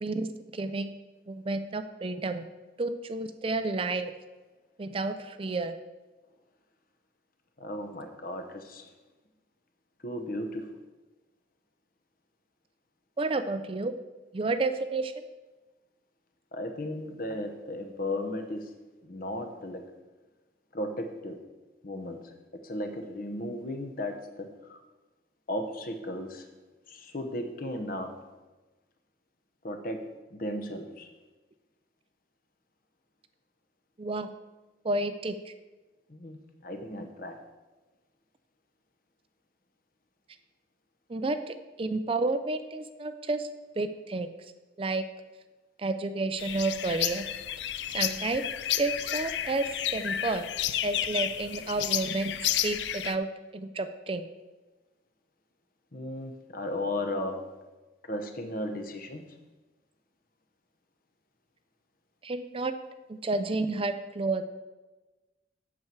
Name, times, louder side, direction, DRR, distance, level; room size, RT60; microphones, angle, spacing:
voice 1, 0.5-0.9 1.3-2.4 2.8-4.1 4.8-5.7 13.2-13.9 14.3-15.1 34.0-34.3 34.8-35.5 41.1-43.5 43.8-44.3 44.8-45.0 45.8-47.3 47.9-48.4 48.7-49.6 49.9-50.5 50.8-52.3 52.6-53.3 53.5-54.3 62.2-62.7 63.1-64.4, right 3 dB, 30° right, 9 dB, 0.4 m, -30 dB
voice 2, 7.6-8.9 10.0-10.8 16.5-18.7 19.0-19.9 20.7-21.4 21.8-24.8 25.5-26.5 26.9-28.3 29.6-31.1 36.1-37.4 55.9-57.6 58.0-59.3, left 1 dB, 50° left, 6 dB, 1.0 m, -35 dB
sound 1, 46.4-53.1, left 11 dB, 70° left, 0.4 m, -31 dB
8.6 x 7.0 x 4.6 m, 1.2 s
head